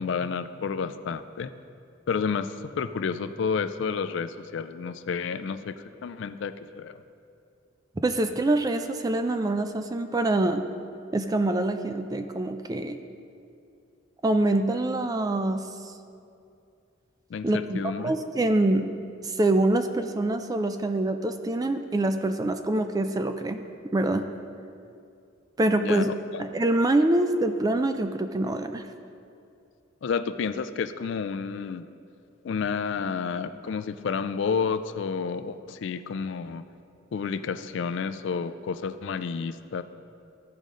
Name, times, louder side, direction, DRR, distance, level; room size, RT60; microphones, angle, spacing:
voice 1, 0.0-1.5 2.1-7.0 17.3-18.1 25.8-26.4 30.0-31.9 32.4-36.6 37.1-39.8, left 5 dB, 60° left, 11 dB, 0.3 m, -30 dB
voice 2, 8.0-10.6 11.1-13.0 14.2-15.9 17.4-19.0 19.2-23.6 23.9-24.3 25.6-26.1 26.4-28.8, right 2 dB, 20° right, 7 dB, 0.3 m, -25 dB
14.5 x 5.2 x 3.7 m, 2.5 s
head